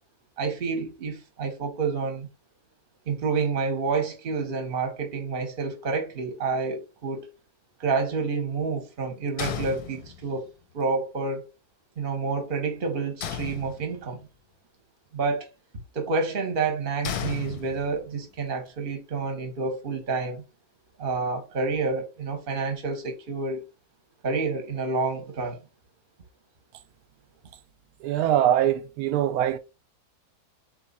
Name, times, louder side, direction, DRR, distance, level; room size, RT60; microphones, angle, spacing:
voice 1, 0.4-2.3 3.1-7.3 7.8-10.5 10.7-11.5 12.0-14.2 15.1-15.5 15.9-20.4 21.0-23.6 24.2-25.6, right 4 dB, 40° right, 0.9 m, -29 dB
sound 1, 9.4-10.5 13.2-14.2 17.0-18.2, left 8 dB, 90° left, 1.2 m, -34 dB
voice 2, 28.0-29.6, right 11 dB, 80° right, 1.1 m, -23 dB
3.8 x 3.1 x 4.0 m
omnidirectional pair, 1.6 m